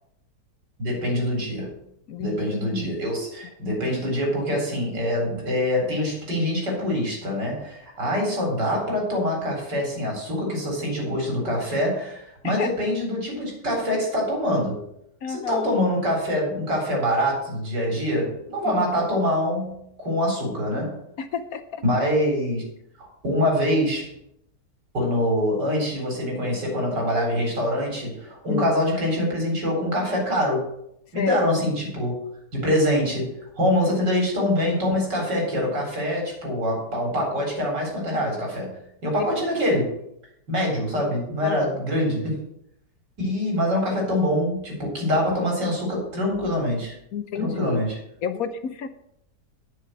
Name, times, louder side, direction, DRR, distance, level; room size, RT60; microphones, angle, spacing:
voice 1, 0.8-1.7 2.2-14.8 15.3-21.0 21.8-22.6 23.0-24.1 24.9-30.7 31.1-32.2 32.5-39.9 40.5-42.4 43.2-46.9 47.3-48.0, left 1 dB, 85° right, 0 dB, 4.8 m, -25 dB
voice 2, 2.1-2.4 12.4-12.7 15.2-15.7 18.6-18.9 21.2-21.8 28.5-28.7 31.1-31.4 39.2-39.3 41.4-41.8 47.1-47.8 48.2-48.9, left 7 dB, 65° left, 10 dB, 1.2 m, -30 dB
9.4 x 6.8 x 7.6 m, 0.74 s
omnidirectional pair, 1.8 m